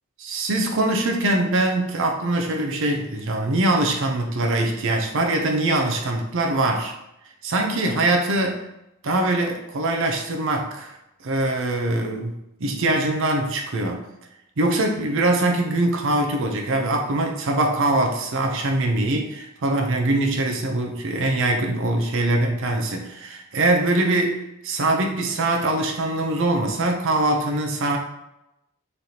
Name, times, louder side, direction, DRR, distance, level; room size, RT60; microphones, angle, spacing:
voice 1, 0.2-6.9 7.4-8.6 9.0-10.9 11.2-14.0 14.6-28.0, right 2 dB, 65° right, 3 dB, 0.7 m, -23 dB
4.1 x 3.3 x 2.8 m, 0.87 s
head